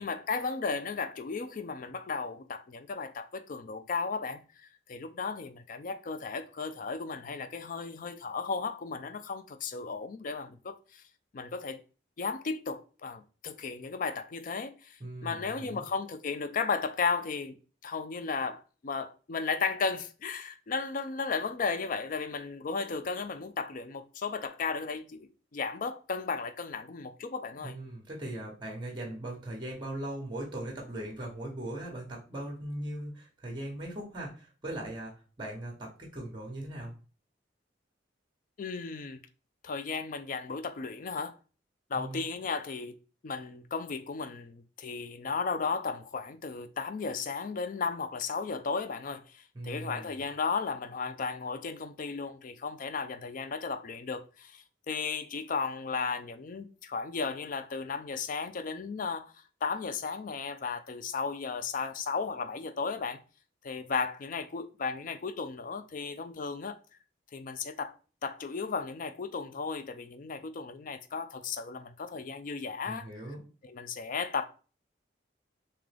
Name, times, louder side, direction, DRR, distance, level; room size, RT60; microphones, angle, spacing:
voice 1, 0.0-11.0 11.3-11.8 12.2-17.6 17.8-27.8 38.6-39.2 39.6-41.3 41.9-42.9 43.2-63.2 63.6-66.8 67.3-67.9 68.2-73.1 73.6-74.4, left 5 dB, 45° left, 0.4 m, -35 dB
voice 2, 15.0-15.9 27.6-36.9 41.9-42.2 49.5-50.2 72.9-73.4, right 1 dB, 25° right, 1.0 m, -39 dB
3.6 x 2.9 x 3.3 m
head